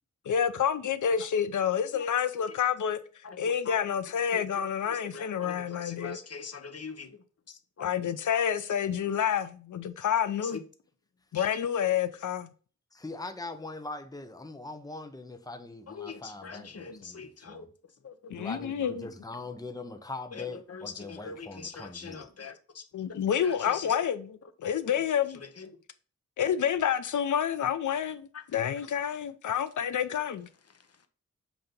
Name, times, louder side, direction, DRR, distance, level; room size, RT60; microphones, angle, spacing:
voice 1, 0.3-3.0 3.4-6.2 7.8-10.6 11.3-12.5 18.3-19.1 22.9-24.3 24.6-25.4 26.4-30.5, left 8 dB, 90° left, 0.5 m, -28 dB
voice 2, 1.9-2.6 3.2-3.7 4.1-7.2 7.5-8.4 10.4-10.6 11.3-11.6 15.9-17.7 18.0-18.5 18.8-18.9 20.3-22.8 23.1-23.2 23.4-24.0 24.9-25.1 25.3-25.7 28.3-28.9 30.7-31.1, left 5 dB, 55° left, 0.9 m, -44 dB
voice 3, 12.9-17.7 18.3-22.3, left 3 dB, 15° left, 0.8 m, -42 dB
7.9 x 2.8 x 5.3 m
wide cardioid pair, 105°, 29 cm